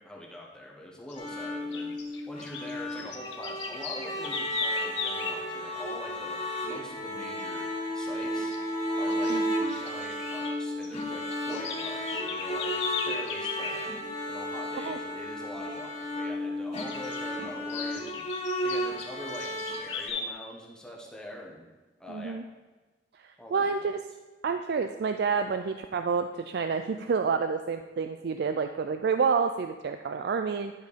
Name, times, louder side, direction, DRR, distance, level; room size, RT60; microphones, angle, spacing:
voice 1, 0.0-7.7 7.9-8.6 9.0-14.0 14.3-21.7 22.0-22.4 23.4-23.7, left 1 dB, 5° left, -2 dB, 1.3 m, -44 dB
sound 1, 1.1-1.3 1.7-5.4 8.0-8.3 8.5-8.7 9.1-10.6 10.8-13.8 16.8-17.2 17.7-20.3, left 6 dB, 90° left, 1.0 m, -37 dB
sound 2, 1.1-20.1, equal, 35° left, 2.6 m, -33 dB
voice 2, 22.1-22.4 23.1-24.1 24.4-30.7, right 5 dB, 65° right, 8 dB, 0.4 m, -29 dB
11.0 x 4.5 x 5.1 m, 1.3 s
head